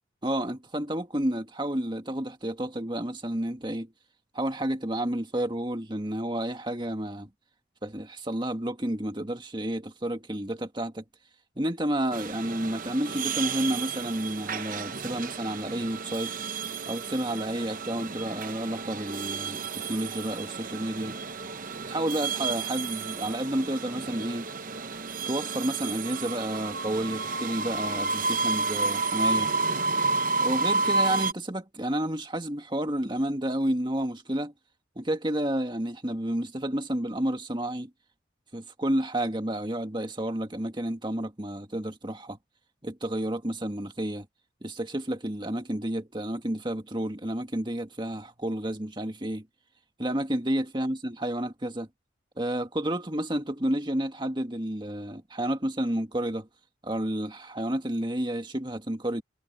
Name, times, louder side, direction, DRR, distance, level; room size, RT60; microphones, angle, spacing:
voice 1, 0.2-3.9 4.3-7.3 7.8-11.0 11.6-16.3 16.9-21.2 21.9-24.5 25.3-29.5 30.4-34.5 35.0-37.9 38.5-42.4 42.8-44.3 44.6-49.5 50.0-51.9 52.4-56.5 56.8-59.2, right 1 dB, 25° right, 1.9 m, -30 dB
sound 1, 12.1-31.3, right 3 dB, 45° right, 0.9 m, -31 dB
head